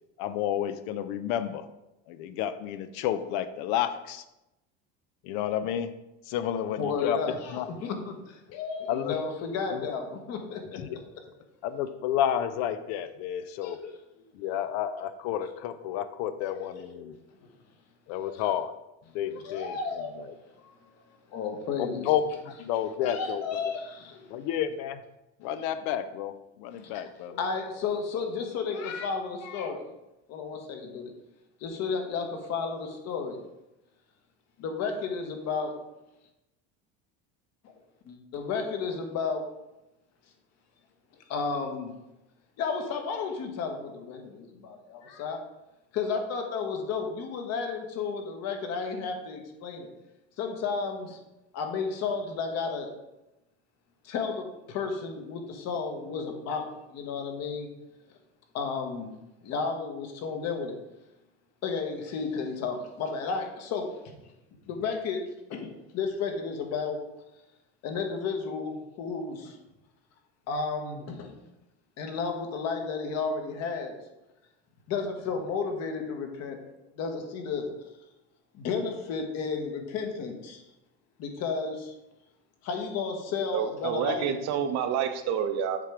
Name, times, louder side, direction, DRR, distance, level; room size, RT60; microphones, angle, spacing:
voice 1, 0.2-1.7 2.1-4.2 5.2-5.9 6.3-7.2 7.5-7.7 8.9-9.1 9.7-9.9 10.7-11.0 11.6-13.8 14.3-17.2 18.1-18.7 19.1-19.8 20.2-20.3 21.8-23.6 24.3-25.0 25.4-27.4, left 10 dB, 75° left, 11 dB, 0.6 m, -31 dB
voice 2, 6.8-10.8 13.6-14.0 16.4-17.1 18.1-18.4 19.3-20.1 20.6-20.8 21.3-22.1 23.0-24.5 26.8-26.9 27.3-29.8 30.3-31.1 31.6-33.4 34.6-35.7 37.6-37.7 38.0-39.5 41.3-41.9 42.6-45.4 45.9-49.9 50.4-51.2 51.5-52.9 54.0-57.7 58.5-59.1 59.4-60.8 61.6-64.1 64.7-65.2 65.5-67.0 67.8-69.6 70.5-71.3 72.0-74.0 74.9-76.6 77.0-77.7 78.5-80.6 81.2-81.9 82.6-84.6, left 5 dB, 55° left, 4 dB, 1.2 m, -33 dB
voice 3, 83.5-85.8, right 8 dB, 60° right, 8 dB, 0.8 m, -28 dB
7.5 x 3.4 x 4.9 m, 0.94 s
cardioid pair, 140°, 32 cm